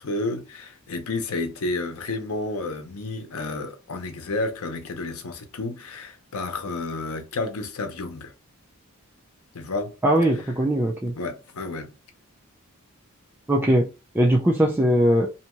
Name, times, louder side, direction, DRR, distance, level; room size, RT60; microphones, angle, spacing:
voice 1, 0.0-8.3 9.5-9.9 11.2-11.9, left 2 dB, 85° left, 0.7 m, -31 dB
voice 2, 10.0-11.1 13.5-13.9 14.1-15.3, right 1 dB, 10° right, 0.3 m, -20 dB
2.7 x 2.3 x 2.9 m
head